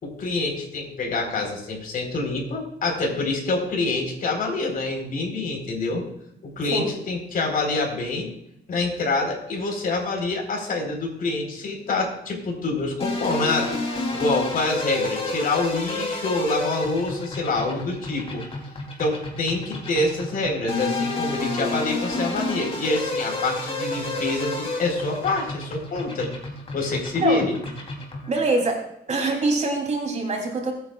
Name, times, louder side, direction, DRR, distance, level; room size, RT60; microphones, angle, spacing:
voice 1, 0.0-6.1 6.4-8.3 8.7-13.7 14.1-18.4 19.0-26.3 26.7-27.5, left 3 dB, 55° left, 1 dB, 4.2 m, -26 dB
sound 1, 13.0-28.3, left 2 dB, 35° left, 3.4 m, -30 dB
voice 2, 28.3-28.8 29.1-30.7, right 3 dB, 40° right, 1 dB, 3.5 m, -24 dB
23.0 x 9.4 x 2.4 m, 0.79 s
cardioid pair, 120°, 17 cm